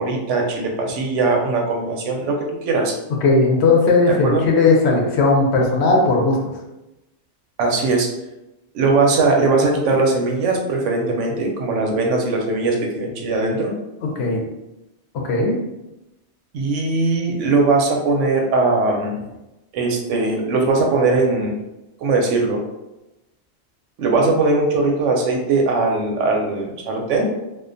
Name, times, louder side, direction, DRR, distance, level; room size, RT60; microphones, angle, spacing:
voice 1, 0.0-2.9 4.1-4.4 7.6-8.1 8.7-13.7 16.5-19.2 19.7-21.5 22.0-22.6 24.0-27.3, right 3 dB, 90° right, 0 dB, 0.9 m, -20 dB
voice 2, 3.2-6.4 14.0-14.4 15.3-15.6, left 3 dB, 70° left, 0 dB, 0.8 m, -17 dB
2.3 x 2.2 x 2.5 m, 0.96 s
omnidirectional pair, 1.2 m